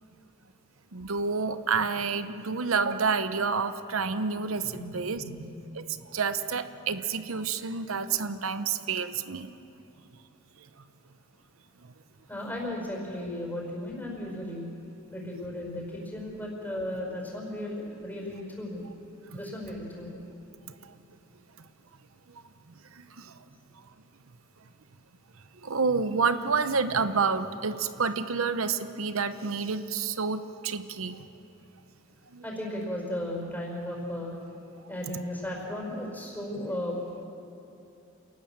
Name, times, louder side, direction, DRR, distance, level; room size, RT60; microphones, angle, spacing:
voice 1, 0.9-5.2 5.7-5.8 6.1-9.5 23.0-23.3 25.6-31.2 32.3-32.4, right 5 dB, 90° right, 11 dB, 0.9 m, -29 dB
voice 2, 12.3-14.6 15.1-18.9 19.3-20.2 32.4-34.4 34.9-37.0, left 1 dB, 10° left, -1 dB, 5.5 m, -35 dB
28.0 x 19.0 x 7.6 m, 2.7 s
head